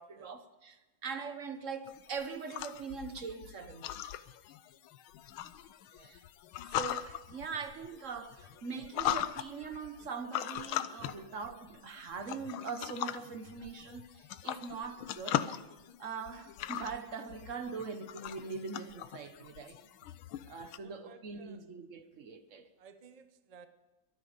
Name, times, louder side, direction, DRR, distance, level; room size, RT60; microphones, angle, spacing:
voice 1, 0.0-4.0 6.0-6.2 6.7-15.5 16.0-19.8 20.5-22.7, right 5 dB, 45° right, 9 dB, 1.3 m, -42 dB
sound 1, 1.9-20.8, left 12 dB, 85° left, 1.5 m, -40 dB
voice 2, 20.8-21.6 22.8-23.7, right 6 dB, 75° right, 9 dB, 0.3 m, -57 dB
23.5 x 9.4 x 5.2 m, 1.1 s
omnidirectional pair, 2.2 m